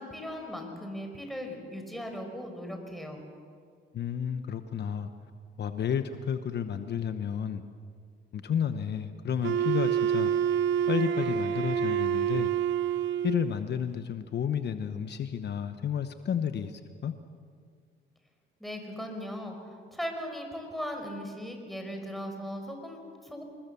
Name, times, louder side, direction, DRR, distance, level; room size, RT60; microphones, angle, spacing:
voice 1, 0.0-3.2 18.6-23.4, equal, ahead, 3 dB, 5.5 m, -38 dB
voice 2, 3.9-5.1 5.6-7.6 8.3-10.3 10.9-12.5 13.2-17.1, left 8 dB, 60° left, 9 dB, 1.1 m, -31 dB
Wind instrument woodwind instrument, 9.4-13.6, right 9 dB, 70° right, 0.8 m, -27 dB
26.5 x 21.0 x 7.0 m, 2.1 s
cardioid pair, 90°, 20 cm